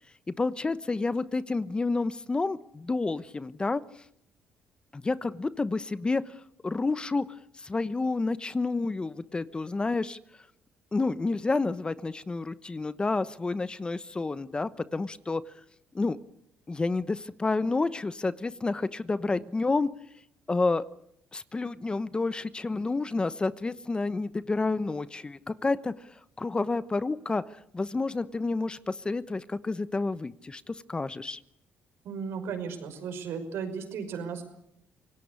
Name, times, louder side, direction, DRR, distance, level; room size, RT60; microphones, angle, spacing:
voice 1, 0.4-3.8 4.9-6.3 6.6-7.3 7.6-10.2 10.9-15.4 15.9-16.2 16.7-19.9 20.5-20.8 21.3-25.9 26.4-31.4, left 3 dB, 20° left, 15 dB, 1.0 m, -29 dB
voice 2, 32.0-34.4, right 6 dB, 75° right, 7 dB, 5.5 m, -35 dB
26.5 x 18.0 x 8.4 m, 0.75 s
cardioid pair, 85°, 4 cm